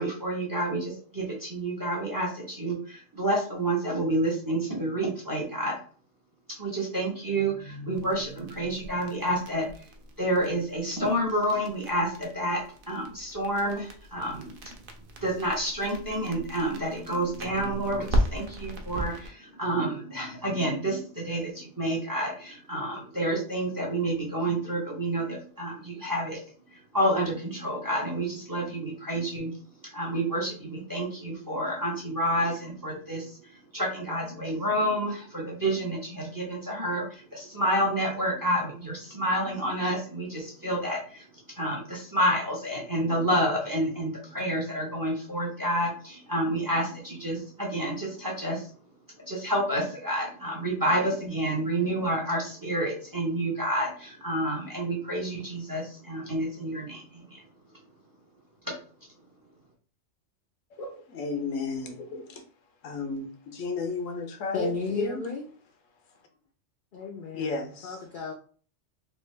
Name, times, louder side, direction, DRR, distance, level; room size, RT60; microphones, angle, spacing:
voice 1, 0.0-5.8 6.6-9.8 10.2-14.8 15.2-26.4 26.7-29.5 29.9-41.3 41.6-48.7 49.3-57.3 58.6-58.8, right 1 dB, 20° right, 0.7 m, -29 dB
sound 1, 7.9-19.3, equal, 55° right, 0.7 m, -36 dB
voice 2, 60.7-62.5 62.8-65.2 67.3-68.0, left 3 dB, 85° left, 1.1 m, -33 dB
voice 3, 64.5-65.5 66.9-68.3, left 4 dB, 60° left, 0.6 m, -33 dB
3.3 x 2.5 x 3.1 m
omnidirectional pair, 1.3 m